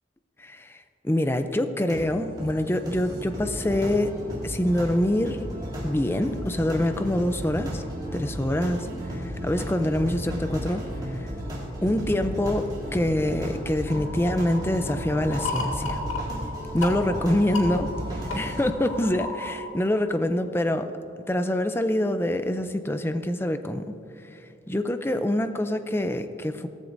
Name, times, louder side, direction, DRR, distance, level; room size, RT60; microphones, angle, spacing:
voice 1, 0.4-4.1 4.4-5.4 5.8-7.8 8.1-10.8 11.2-11.3 11.8-16.0 16.7-17.9 18.3-20.9 21.3-23.9 24.7-26.7, left 1 dB, 10° left, 9 dB, 0.4 m, -25 dB
sound 1, 1.8-18.7, equal, 25° right, 2.8 m, -34 dB
sound 2, 13.9-19.6, left 2 dB, 90° left, 2.1 m, -35 dB
17.5 x 14.0 x 2.6 m, 2.8 s
head